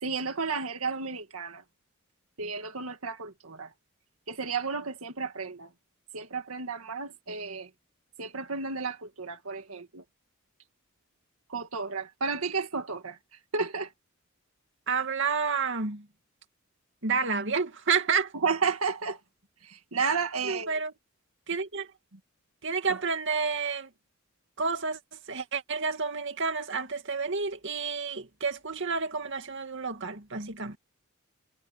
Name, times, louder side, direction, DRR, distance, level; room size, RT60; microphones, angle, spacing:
voice 1, 0.0-1.6 2.4-3.7 4.3-5.7 6.1-7.7 8.2-10.0 11.5-13.2 13.5-13.9 18.4-19.2 19.6-20.8 22.9-23.0, right 5 dB, 80° right, 2.0 m, -32 dB
voice 2, 14.9-16.0 17.0-18.3 20.4-20.9 21.5-21.9 22.6-23.9 24.6-25.0 25.3-30.8, right 5 dB, 60° right, 2.4 m, -30 dB
head